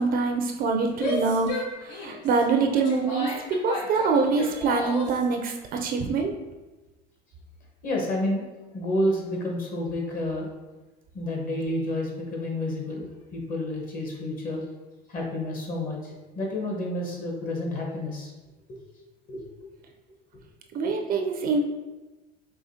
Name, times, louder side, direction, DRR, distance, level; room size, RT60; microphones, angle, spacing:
voice 1, 0.0-6.3 20.7-21.6, right 4 dB, 45° right, 3 dB, 0.5 m, -25 dB
Female speech woman speaking / Yell, 0.9-5.2, left 1 dB, 70° left, 1.0 m, -33 dB
voice 2, 7.8-8.5 8.7-10.5 11.1-14.6 15.1-18.3 19.3-19.4, left 1 dB, 40° left, -1 dB, 1.2 m, -30 dB
4.9 x 3.1 x 2.8 m, 1.1 s
supercardioid pair, 115°, 21 cm